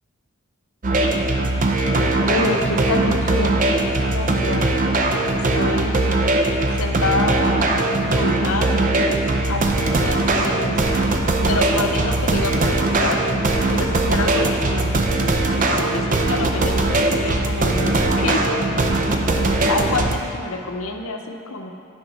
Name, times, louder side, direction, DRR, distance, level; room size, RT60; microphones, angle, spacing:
sound 1, 0.8-20.2, right 2 dB, 40° right, 0.5 m, -20 dB
voice 1, 2.3-4.7 5.3-6.0 6.8-7.6 8.1-8.8 9.5-11.1 11.5-13.3 13.7-14.9 15.6-18.6 19.7-21.7, left 3 dB, 80° left, 4 dB, 0.7 m, -27 dB
10.0 x 5.2 x 4.2 m, 2.5 s
head